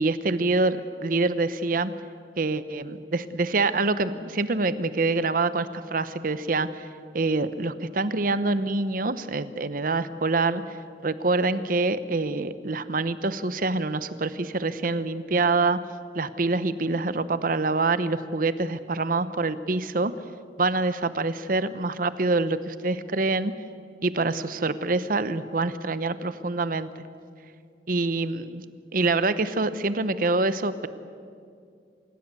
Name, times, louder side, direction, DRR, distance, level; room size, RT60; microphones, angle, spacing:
voice 1, 0.0-1.9 2.4-6.9 7.1-10.6 11.0-15.8 16.1-20.1 20.6-23.5 24.0-27.0 27.9-28.6 28.9-30.9, right 3 dB, 50° right, 13 dB, 0.8 m, -26 dB
28.0 x 16.5 x 8.3 m, 2.3 s
head